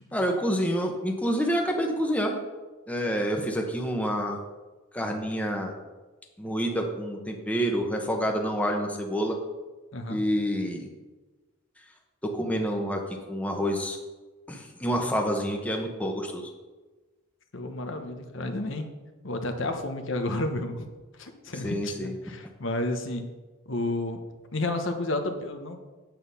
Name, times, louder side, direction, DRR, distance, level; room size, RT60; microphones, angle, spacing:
voice 1, 0.1-2.3 2.9-4.4 4.9-5.7 6.4-9.4 10.1-10.9 12.2-13.0 13.3-14.0 14.5-16.5 21.6-22.1, equal, 5° left, 2 dB, 1.0 m, -28 dB
voice 2, 17.5-18.9 19.2-20.9 21.2-23.2 23.7-24.2 24.5-25.8, left 2 dB, 65° left, 5 dB, 1.1 m, -31 dB
8.8 x 8.1 x 5.5 m, 1.2 s
head